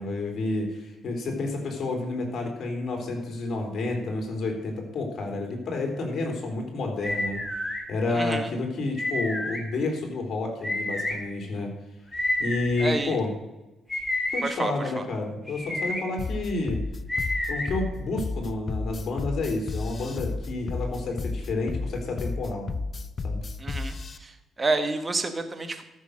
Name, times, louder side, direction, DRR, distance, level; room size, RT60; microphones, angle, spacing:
voice 1, 0.0-7.4 7.9-11.7 12.4-13.3 14.3-16.8 17.5-22.7 23.2-23.4, left 2 dB, 55° left, 3 dB, 3.4 m, -30 dB
sound 1, 7.0-7.8 9.0-9.6 10.6-11.1 12.1-12.9 13.9-14.4 15.5-16.0 17.1-17.7, left 1 dB, 10° left, 2.7 m, -29 dB
voice 2, 8.1-8.5 12.8-13.2 14.4-15.0 23.6-24.3 24.6-25.8, right 3 dB, 25° right, 8 dB, 1.5 m, -29 dB
sound 2, 16.2-24.2, left 3 dB, 40° left, 0.7 m, -32 dB
13.5 x 6.4 x 6.5 m, 1.0 s
cardioid pair, 90°, 0 cm